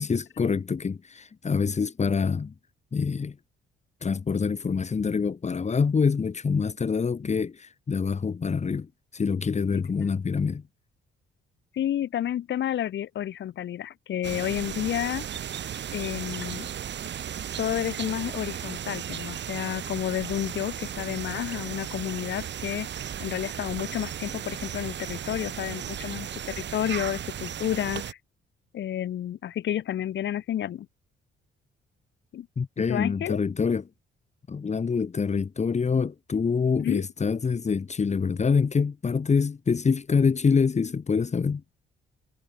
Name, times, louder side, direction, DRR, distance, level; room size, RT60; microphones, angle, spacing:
voice 1, 0.0-2.5 2.9-3.4 4.0-10.6 32.6-33.8 34.5-41.6, left 5 dB, 35° left, 2.5 m, -26 dB
voice 2, 11.7-15.2 15.9-16.7 17.6-28.2 28.7-30.9 32.3-32.5 32.9-33.4 36.8-37.0, left 11 dB, 65° left, 1.7 m, -30 dB
sound 1, 14.2-28.1, right 9 dB, 65° right, 7.6 m, -35 dB
cardioid pair, 90°, 20 cm